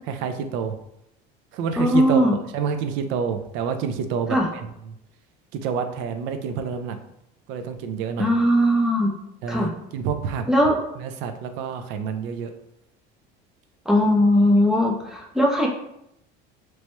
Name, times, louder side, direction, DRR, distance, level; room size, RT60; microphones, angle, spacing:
voice 1, 0.1-0.7 1.5-4.7 5.5-7.0 7.5-8.3 9.4-10.4 11.0-12.5, right 6 dB, 65° right, 7 dB, 0.4 m, -28 dB
voice 2, 1.8-2.4 4.3-4.5 8.2-9.1 9.5-9.7 10.5-10.8 13.9-15.7, equal, 5° right, -1 dB, 0.4 m, -19 dB
3.0 x 2.2 x 3.0 m, 0.79 s
cardioid pair, 155°, 21 cm